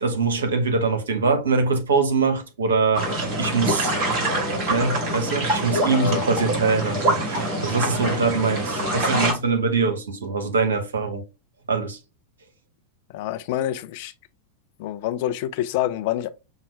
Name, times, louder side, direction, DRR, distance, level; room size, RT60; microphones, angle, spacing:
voice 1, 0.0-3.1 3.4-3.9 4.7-11.2 11.7-12.0, right 4 dB, 70° right, 0.8 m, -23 dB
sound 1, 2.9-9.3, right 1 dB, 40° right, 1.9 m, -25 dB
voice 2, 5.9-6.2 13.1-14.1 14.8-16.3, left 12 dB, 50° left, 0.4 m, -27 dB
5.6 x 2.1 x 3.2 m
figure-of-eight pair, 90°, 0 cm